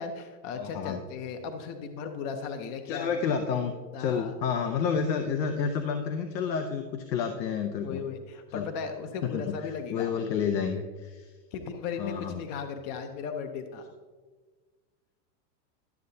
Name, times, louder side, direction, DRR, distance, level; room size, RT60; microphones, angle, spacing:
voice 1, 0.0-3.1 3.9-4.3 7.8-10.1 11.5-13.9, left 6 dB, 35° left, 6 dB, 0.5 m, -36 dB
voice 2, 0.5-1.0 2.9-8.0 8.5-8.7 9.3-11.3 12.0-12.4, left 6 dB, 90° left, 5 dB, 0.8 m, -30 dB
12.0 x 6.5 x 2.7 m, 1.4 s
supercardioid pair, 140°, 49 cm